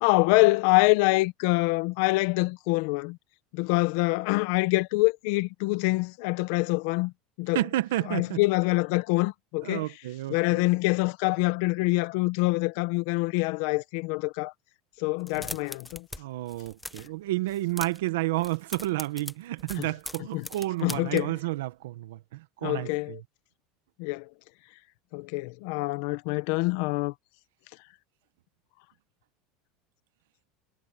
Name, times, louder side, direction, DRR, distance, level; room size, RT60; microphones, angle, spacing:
voice 1, 0.0-3.2 3.5-7.1 7.4-7.6 8.1-9.8 10.3-14.5 15.0-16.1 19.8-19.9 20.3-20.5 20.8-21.4 22.6-23.2 24.0-24.3 25.1-27.1, left 23 dB, 70° left, 1.3 m, -25 dB
voice 2, 7.5-8.4 9.6-10.6 15.4-15.5 16.1-23.2, right 17 dB, 85° right, 1.6 m, -31 dB
sound 1, 15.2-16.2 16.5-17.1 17.5-18.1 18.4-21.2, left 2 dB, 5° left, 1.0 m, -40 dB
supercardioid pair, 115°, 0 cm